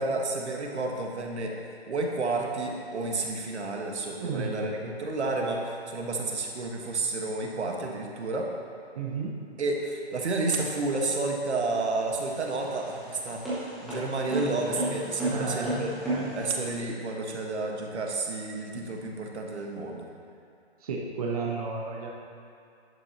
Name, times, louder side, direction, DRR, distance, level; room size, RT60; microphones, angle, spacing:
voice 1, 0.0-1.5 1.9-8.5 9.6-15.9 16.3-20.1, right 3 dB, 85° right, 1 dB, 1.6 m, -31 dB
voice 2, 4.2-4.7 8.9-9.3 15.3-16.3 20.8-22.1, right 4 dB, 35° right, -2 dB, 0.9 m, -33 dB
sound 1, 12.1-16.7, right 1 dB, ahead, 0.7 m, -33 dB
11.0 x 8.7 x 3.0 m, 2.5 s
hypercardioid pair, 170°, 33 cm